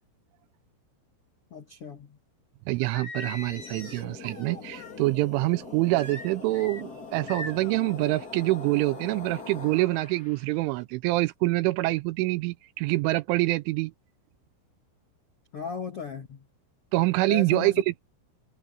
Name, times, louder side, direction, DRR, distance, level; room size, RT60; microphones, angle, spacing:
voice 1, 1.5-2.2 15.5-16.4 17.3-17.8, left 6 dB, 85° left, 1.2 m, -36 dB
voice 2, 2.7-13.9 16.9-18.0, right 20 dB, 80° right, 2.9 m, -26 dB
Singing, 2.8-5.0 6.0-6.8 7.3-7.8, left 2 dB, 25° left, 5.0 m, -41 dB
sound 1, 3.2-10.6, left 4 dB, 55° left, 1.0 m, -43 dB
omnidirectional pair, 5.9 m